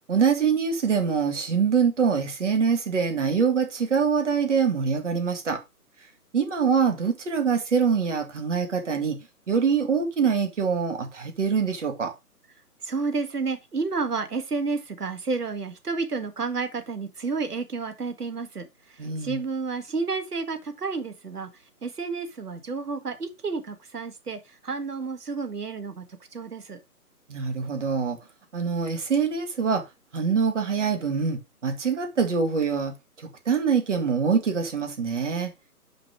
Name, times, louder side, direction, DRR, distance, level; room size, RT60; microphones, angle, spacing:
voice 1, 0.1-5.6 6.3-9.2 9.5-12.1 19.0-19.4 27.3-28.2 28.5-29.8 30.1-32.9 33.5-35.5, right 6 dB, 50° right, 2.1 m, -24 dB
voice 2, 12.8-26.0 26.3-26.8, right 4 dB, 75° right, 1.7 m, -31 dB
6.0 x 5.1 x 4.7 m
figure-of-eight pair, 145°, 46 cm